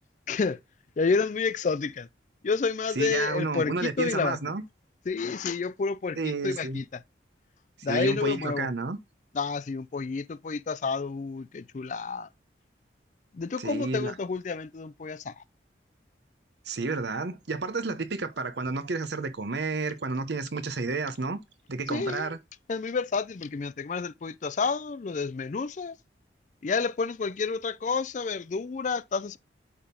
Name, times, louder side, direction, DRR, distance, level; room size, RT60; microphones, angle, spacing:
voice 1, 0.3-0.6 1.0-2.1 2.4-4.4 5.1-7.0 7.8-8.7 9.3-12.3 13.3-15.4 21.9-22.4 22.7-26.0 26.6-29.4, left 4 dB, 40° left, 0.4 m, -29 dB
voice 2, 3.0-4.6 6.2-6.8 7.8-9.0 13.6-14.1 16.7-21.4 21.7-22.4, right 3 dB, 70° right, 0.8 m, -31 dB
8.7 x 3.6 x 3.8 m
head